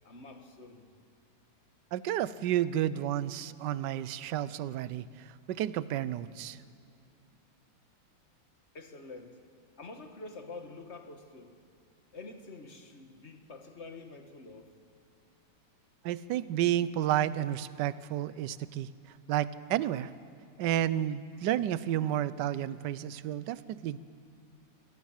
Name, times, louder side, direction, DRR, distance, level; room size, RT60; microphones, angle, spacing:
voice 1, 0.0-0.9 8.7-9.4 9.8-11.6 12.1-14.7, left 3 dB, 35° left, 5 dB, 1.7 m, -47 dB
voice 2, 1.9-5.0 5.5-6.6 16.0-18.9 19.3-20.1 20.6-24.0, right 11 dB, 70° right, 16 dB, 1.2 m, -31 dB
25.0 x 17.5 x 7.3 m, 2.5 s
omnidirectional pair, 2.2 m